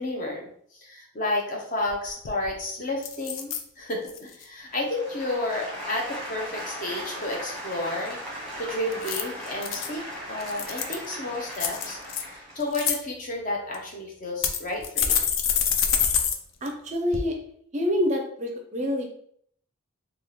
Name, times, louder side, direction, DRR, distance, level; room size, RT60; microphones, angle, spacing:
voice 1, 0.0-8.2 8.6-15.2, left 2 dB, 40° left, 0 dB, 0.7 m, -31 dB
sound 1, 1.9-2.0 2.2-2.6 3.0-3.6 4.1-4.4 8.9-9.9 10.4-11.1 11.6-12.2 12.6-13.0 13.7-13.8 14.4-16.4 16.7-16.8 17.1-17.2, left 7 dB, 70° left, 0.4 m, -26 dB
sound 2, 4.7-12.7, equal, ahead, 1.0 m, -38 dB
voice 2, 16.6-17.3 17.7-19.0, left 1 dB, 35° right, 3 dB, 0.4 m, -26 dB
3.5 x 2.3 x 3.0 m, 0.65 s
head